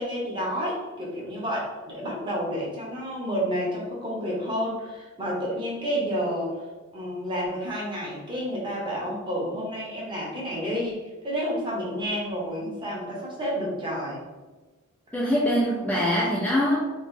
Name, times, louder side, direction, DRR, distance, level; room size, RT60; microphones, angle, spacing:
voice 1, 0.0-6.6 6.9-14.3, equal, 25° right, -4 dB, 0.9 m, -30 dB
voice 2, 15.1-16.9, equal, 5° left, -6 dB, 0.4 m, -23 dB
3.0 x 2.9 x 3.7 m, 1.2 s
head